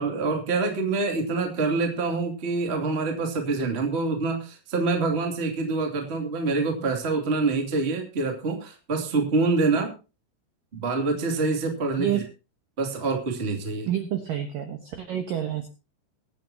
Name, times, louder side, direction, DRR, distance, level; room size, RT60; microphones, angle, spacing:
voice 1, 0.0-9.9 10.7-12.2 12.8-13.9, right 3 dB, 25° right, 3 dB, 1.3 m, -26 dB
voice 2, 13.9-15.7, right 10 dB, 70° right, 6 dB, 2.1 m, -28 dB
23.5 x 9.1 x 2.9 m, 0.31 s
omnidirectional pair, 5.8 m